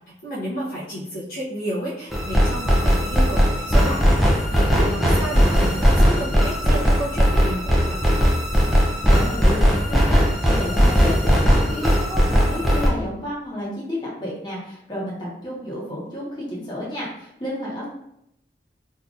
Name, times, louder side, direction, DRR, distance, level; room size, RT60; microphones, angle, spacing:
voice 1, 0.2-8.0, right 1 dB, 50° left, -7 dB, 0.8 m, -31 dB
sound 1, 2.1-12.9, equal, ahead, 0.5 m, -18 dB
voice 2, 9.1-10.2 10.5-17.9, left 1 dB, 25° left, -6 dB, 1.1 m, -31 dB
3.6 x 2.8 x 2.5 m, 0.76 s
head